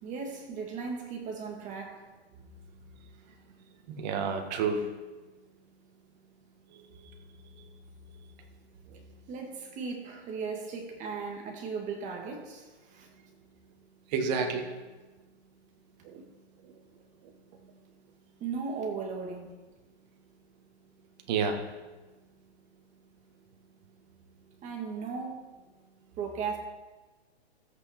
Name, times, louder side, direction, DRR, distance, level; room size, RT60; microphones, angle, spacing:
voice 1, 0.0-2.1 9.3-13.1 18.4-19.6 24.6-25.5 26.2-26.6, right 5 dB, 25° right, 1.9 m, -37 dB
voice 2, 3.9-4.9 7.6-7.7 14.1-14.7 16.0-16.2 21.3-21.6, right 5 dB, 40° right, 1.8 m, -29 dB
13.5 x 8.3 x 4.4 m
hypercardioid pair, 140°, 32 cm